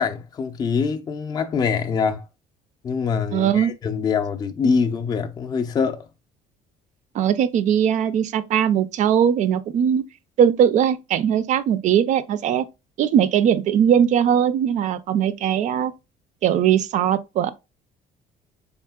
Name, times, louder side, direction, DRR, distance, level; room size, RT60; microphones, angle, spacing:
voice 1, 0.0-2.2 2.8-6.0, left 5 dB, 25° left, 0.4 m, -24 dB
voice 2, 3.3-3.7 7.1-10.0 10.4-12.6 13.0-15.9 16.4-17.5, right 9 dB, 50° right, 0.4 m, -20 dB
4.0 x 3.6 x 2.2 m
cardioid pair, 140°, 16 cm